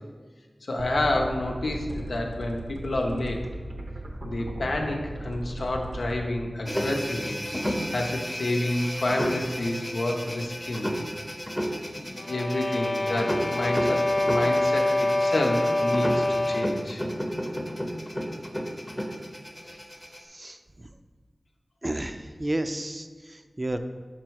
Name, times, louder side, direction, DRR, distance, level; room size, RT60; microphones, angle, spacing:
voice 1, 0.6-3.4 4.2-7.4 7.9-10.9 11.9-17.0 19.6-19.8, left 1 dB, 90° left, 1 dB, 0.7 m, -29 dB
sound 1, 0.8-6.2, right 1 dB, 80° right, 0.8 m, -37 dB
sound 2, 6.7-20.2, equal, 10° left, 0.7 m, -32 dB
sound 3, 12.2-16.9, left 2 dB, 40° left, 0.3 m, -25 dB
voice 2, 20.3-20.9 21.8-23.8, right 1 dB, 35° right, 8 dB, 0.4 m, -32 dB
6.1 x 4.5 x 4.6 m, 1.4 s
wide cardioid pair, 55°, 0 cm